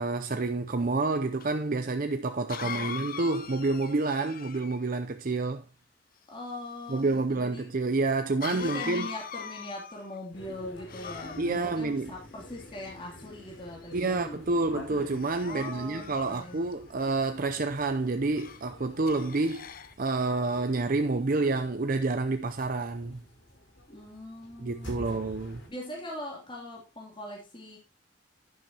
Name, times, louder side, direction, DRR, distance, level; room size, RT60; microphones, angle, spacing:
voice 1, 0.0-5.6 6.9-9.1 11.4-12.1 13.9-19.7 20.0-23.2 24.6-25.6, right 3 dB, 50° right, 0.6 m, -28 dB
Cough, 1.4-1.5 2.5-4.9 8.4-10.2 10.9-11.8 12.5-13.2 13.8-14.1 15.1-16.7 18.4-18.6 19.1-19.9, left 7 dB, 50° left, 0.9 m, -41 dB
voice 2, 2.6-3.0 6.3-7.7 8.5-14.4 15.4-16.7 23.9-25.2 25.7-27.8, left 1 dB, 25° left, 3.0 m, -41 dB
sound 1, 10.3-25.7, left 1 dB, 85° left, 4.9 m, -48 dB
11.5 x 10.5 x 2.9 m
head